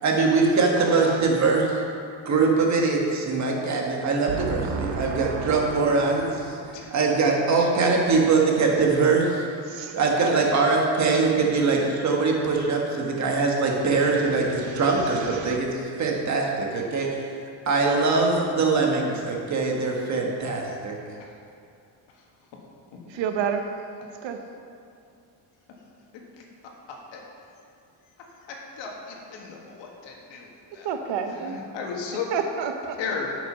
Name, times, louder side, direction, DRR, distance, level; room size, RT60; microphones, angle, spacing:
voice 1, 0.0-1.8 2.2-6.6 6.9-9.5 9.9-17.3 17.7-21.0, right 4 dB, 40° right, 0 dB, 1.4 m, -22 dB
voice 2, 0.8-1.2 4.3-6.8 9.7-10.3 14.5-15.6 23.1-23.7 24.2-24.4 30.8-31.6 32.3-33.0, right 6 dB, 75° right, 5 dB, 0.9 m, -31 dB
voice 3, 22.9-23.2 26.4-26.5 26.9-27.2 28.5-30.9 31.3-32.3 33.0-33.4, left 5 dB, 75° left, 0 dB, 1.7 m, -36 dB
8.8 x 6.4 x 5.6 m, 2.5 s
cardioid pair, 150°, 45 cm